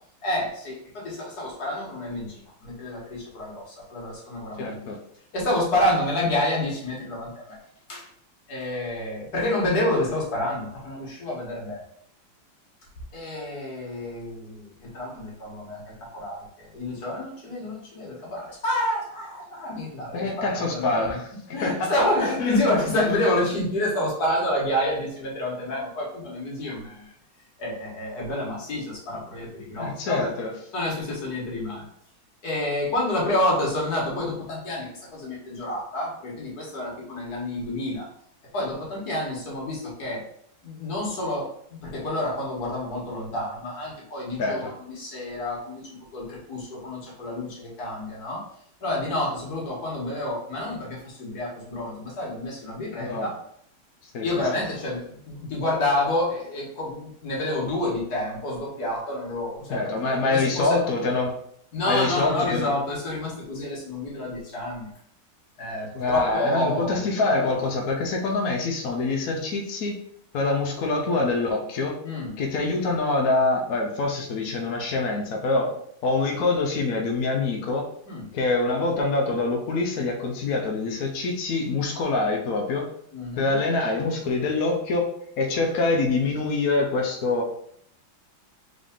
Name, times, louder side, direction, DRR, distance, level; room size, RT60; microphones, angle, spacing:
voice 1, 0.2-4.8 5.3-7.6 7.9-8.1 8.5-11.8 13.1-20.3 20.7-21.2 21.5-27.1 27.6-30.3 30.7-31.8 32.4-38.1 38.5-40.2 40.6-48.4 48.8-53.3 54.2-59.8 60.2-60.8 61.7-64.9 65.6-67.1 72.0-72.3 78.1-78.2 83.1-83.6, left 1 dB, 50° left, -4 dB, 1.9 m, -29 dB
voice 2, 4.6-5.0 20.1-23.0 29.8-30.5 44.4-44.7 53.0-53.3 54.0-54.3 54.6-54.7 59.7-61.3 61.9-62.7 65.9-70.0 70.3-72.0 72.4-75.7 76.0-77.9 78.3-82.9 83.4-85.1 85.4-87.5, left 3 dB, 70° left, 2 dB, 0.8 m, -25 dB
3.8 x 3.7 x 3.6 m, 0.67 s
omnidirectional pair, 2.3 m